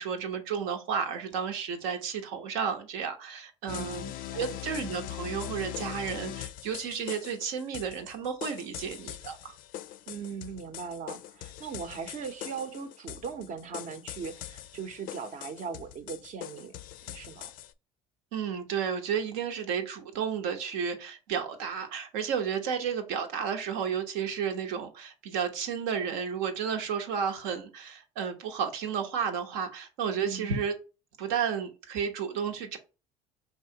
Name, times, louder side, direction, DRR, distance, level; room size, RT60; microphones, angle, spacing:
voice 1, 0.0-9.5 18.3-30.7 31.2-32.8, right 7 dB, 80° right, 0.9 m, -32 dB
sound 1, 3.7-17.7, left 13 dB, 60° left, 0.4 m, -41 dB
voice 2, 3.7-4.0 4.3-4.6 10.1-16.7 17.0-17.5 30.2-30.6, right 6 dB, 50° right, 0.8 m, -39 dB
4.7 x 3.0 x 2.8 m
supercardioid pair, 80°, 16 cm